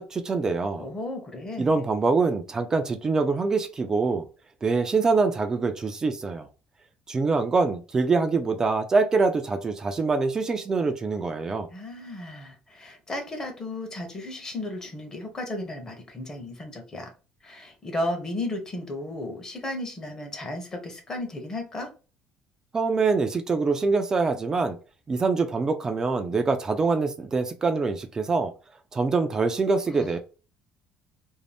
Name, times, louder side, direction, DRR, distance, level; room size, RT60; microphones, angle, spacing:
voice 1, 0.0-0.9 1.6-4.3 4.6-6.5 7.1-11.7 22.7-24.8 25.1-28.5 28.9-30.2, right 4 dB, 25° right, 0.4 m, -24 dB
voice 2, 0.8-1.7 11.7-17.1 17.4-21.9 29.9-30.2, left 1 dB, 25° left, 0.8 m, -34 dB
2.6 x 2.0 x 3.3 m
cardioid pair, 135°, 3 cm